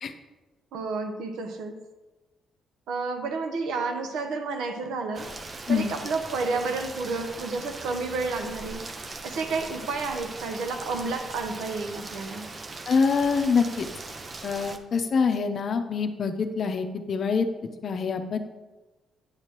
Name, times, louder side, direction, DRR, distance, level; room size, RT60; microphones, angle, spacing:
voice 1, 0.7-1.8 2.9-5.3 5.7-8.8 9.2-12.5, right 3 dB, 90° right, 5 dB, 0.9 m, -31 dB
Rain, 5.1-14.8, right 3 dB, 30° right, 0.6 m, -40 dB
voice 2, 12.9-13.9 14.4-17.5 17.8-18.4, left 5 dB, 50° left, 7 dB, 0.7 m, -25 dB
9.5 x 6.4 x 3.0 m, 1.2 s
cardioid pair, 105°, 0 cm